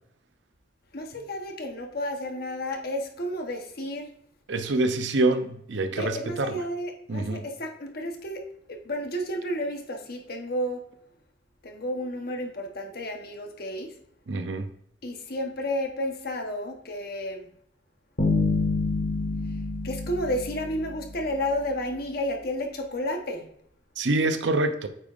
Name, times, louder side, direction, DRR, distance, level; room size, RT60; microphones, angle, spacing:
voice 1, 0.9-4.1 5.9-8.4 8.7-10.8 11.6-13.9 15.0-17.5 19.8-23.4, left 1 dB, 60° left, 1.1 m, -31 dB
voice 2, 4.5-6.6 7.1-7.4 14.3-14.7 24.0-24.9, right 2 dB, 80° right, 0.7 m, -26 dB
Bass guitar, 18.2-21.3, left 3 dB, 75° left, 1.7 m, -27 dB
8.7 x 5.2 x 2.5 m
head